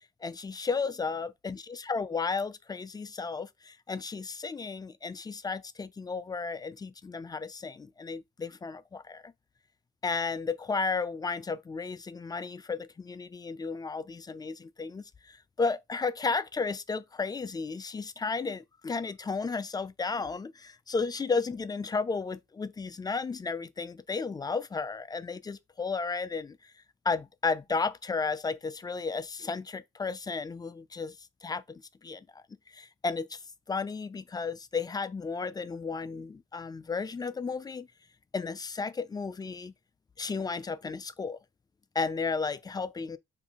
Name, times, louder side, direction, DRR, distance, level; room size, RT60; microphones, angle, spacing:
voice 1, 0.2-9.3 10.0-26.7 27.0-33.4 33.7-37.9 38.3-39.7 40.2-41.4 41.9-43.2, left 4 dB, 20° left, 0.4 m, -33 dB
2.8 x 2.6 x 3.7 m
cardioid pair, 90°, 20 cm